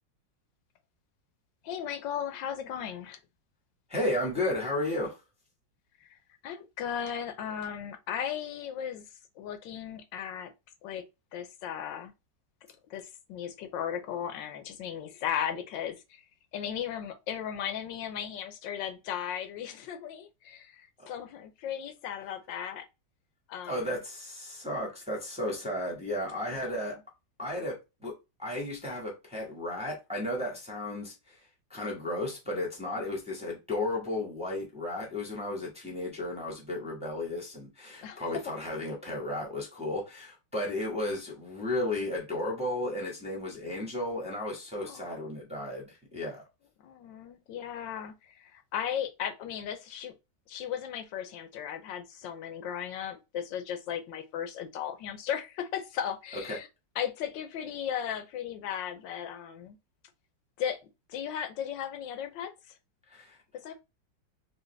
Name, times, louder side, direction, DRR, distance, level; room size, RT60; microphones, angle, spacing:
voice 1, 1.6-3.2 6.4-9.0 9.4-10.5 10.8-11.0 11.3-12.1 12.9-16.2 16.5-22.8 23.5-24.0 26.4-26.8 38.0-38.3 44.7-45.3 46.8-50.1 50.5-56.7 57.0-59.8 60.6-60.8 61.1-62.7 63.6-63.7, left 9 dB, 80° left, 1.4 m, -36 dB
voice 2, 3.9-5.2 21.0-21.1 23.7-26.9 27.4-28.1 28.4-31.4 31.7-46.4 56.5-56.6 63.1-63.4, left 1 dB, 5° right, 1.0 m, -34 dB
4.9 x 2.3 x 3.2 m
omnidirectional pair, 2.0 m